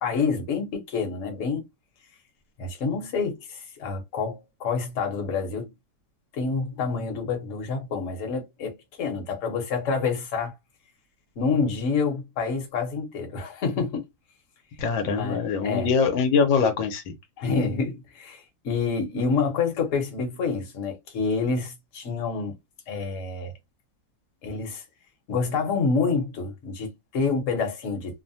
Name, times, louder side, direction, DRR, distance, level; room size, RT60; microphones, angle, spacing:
voice 1, 0.0-1.6 2.6-5.7 6.3-10.5 11.4-14.1 15.0-15.9 17.4-22.6 22.9-23.5 24.4-24.8 25.3-28.2, left 4 dB, 50° left, 1.1 m, -28 dB
voice 2, 14.8-17.2, left 5 dB, 80° left, 1.4 m, -23 dB
3.2 x 2.1 x 2.6 m
omnidirectional pair, 2.0 m